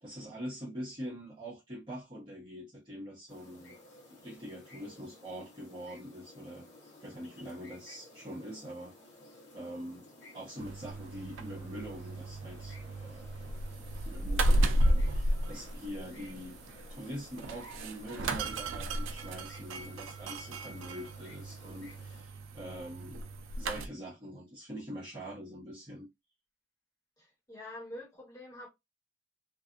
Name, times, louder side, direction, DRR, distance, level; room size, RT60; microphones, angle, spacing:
voice 1, 0.0-3.8 4.2-6.7 7.0-8.9 9.5-10.1 10.3-13.5 14.0-16.6 16.9-23.2 23.6-26.1, equal, 25° right, 0.9 m, -44 dB
sound 1, 3.3-22.2, left 2 dB, 60° left, 1.0 m, -56 dB
sound 2, 10.6-23.9, right 1 dB, 75° right, 0.4 m, -33 dB
voice 2, 27.2-28.7, left 1 dB, 20° left, 1.3 m, -46 dB
2.6 x 2.4 x 2.5 m
head